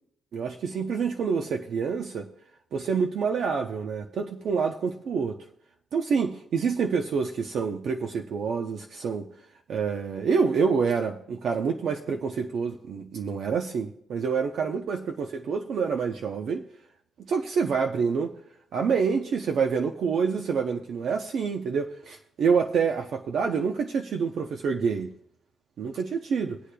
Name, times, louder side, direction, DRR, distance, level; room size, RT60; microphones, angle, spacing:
voice 1, 0.3-2.3 2.7-5.4 5.9-9.3 9.7-16.6 17.3-18.3 18.7-25.1 25.8-26.6, right 5 dB, 65° right, 0.7 m, -27 dB
23.5 x 8.3 x 2.2 m
cardioid pair, 130°, 0 cm